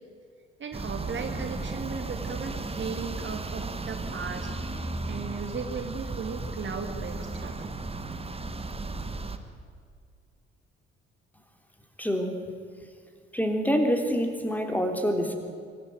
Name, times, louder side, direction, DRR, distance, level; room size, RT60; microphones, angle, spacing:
voice 1, 0.6-7.7, right 5 dB, 35° right, 5 dB, 2.5 m, -37 dB
sound 1, 0.7-9.4, right 3 dB, 20° right, 1.8 m, -35 dB
voice 2, 12.0-12.4 13.3-15.4, equal, 5° left, 5 dB, 3.3 m, -26 dB
24.5 x 14.5 x 9.4 m, 2.2 s
figure-of-eight pair, 50°, 31 cm